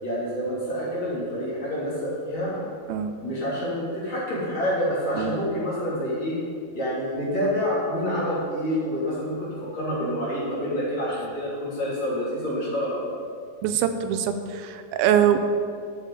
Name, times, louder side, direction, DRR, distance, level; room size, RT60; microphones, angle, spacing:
voice 1, 0.0-2.5 3.2-6.4 6.7-13.0, equal, 35° left, -9 dB, 3.8 m, -27 dB
voice 2, 13.6-15.4, right 9 dB, 90° right, 9 dB, 2.5 m, -23 dB
12.0 x 7.4 x 5.0 m, 2.2 s
omnidirectional pair, 4.2 m